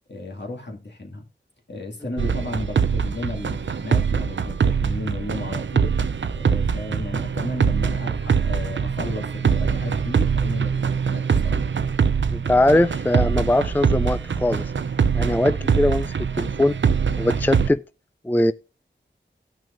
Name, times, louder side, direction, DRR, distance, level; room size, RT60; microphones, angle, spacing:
voice 1, 0.1-1.2 1.7-5.9 6.3-11.6, left 2 dB, 65° left, 2.3 m, -34 dB
sound 1, 2.2-17.7, right 6 dB, 75° right, 0.5 m, -23 dB
voice 2, 12.3-14.6 15.1-16.7 17.2-17.8 18.2-18.5, left 1 dB, 10° left, 0.4 m, -21 dB
17.5 x 6.1 x 2.6 m
wide cardioid pair, 45°, 19 cm